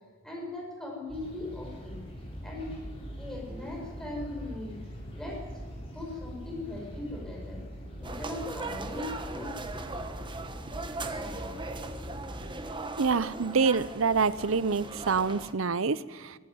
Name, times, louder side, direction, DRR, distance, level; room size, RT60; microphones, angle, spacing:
voice 1, 0.2-2.0 2.4-2.7 3.2-4.8 5.1-5.7 5.9-7.6 8.0-9.6 11.2-11.5, left 2 dB, 5° left, -2 dB, 7.0 m, -39 dB
sound 1, 1.1-12.5, equal, 30° left, 7.2 m, -42 dB
sound 2, 8.0-15.5, right 3 dB, 25° right, 1.3 m, -39 dB
voice 2, 13.0-16.4, right 5 dB, 80° right, 17 dB, 0.8 m, -26 dB
23.0 x 13.5 x 9.5 m, 1.4 s
head